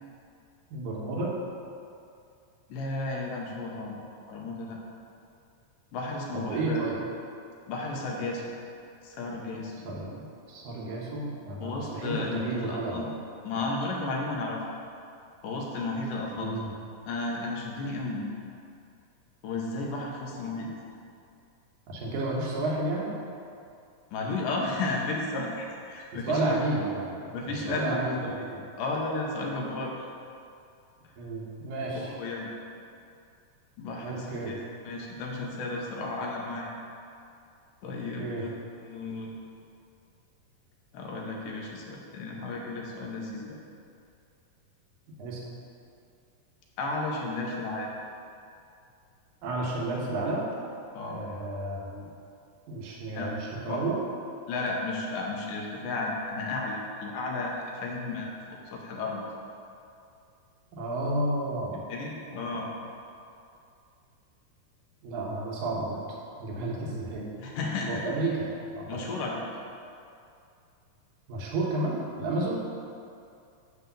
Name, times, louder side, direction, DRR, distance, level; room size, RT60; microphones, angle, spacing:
voice 1, 0.7-1.3 6.3-7.0 9.8-13.1 16.4-16.7 21.9-23.2 26.3-28.6 31.2-32.1 34.0-34.6 38.2-38.4 45.2-45.5 49.4-50.5 51.1-52.1 52.7-53.4 53.6-54.0 60.7-61.8 65.0-66.0 66.4-67.3 67.9-68.9 71.3-72.6, right 2 dB, 65° right, -3 dB, 2.4 m, -31 dB
voice 2, 2.7-4.8 5.9-6.9 7.7-8.4 9.0-9.7 11.6-13.1 13.4-14.6 15.4-16.6 17.0-18.4 19.4-20.7 24.1-26.6 27.3-29.9 31.9-32.5 33.8-34.6 34.8-36.7 37.8-38.6 38.8-39.3 40.9-43.6 46.8-47.9 50.9-51.2 52.9-53.3 53.7-53.8 54.5-59.2 61.9-62.7 67.4-68.0 68.9-69.4, left 2 dB, 75° left, -2 dB, 2.5 m, -33 dB
9.8 x 3.5 x 6.8 m, 2.5 s
omnidirectional pair, 4.0 m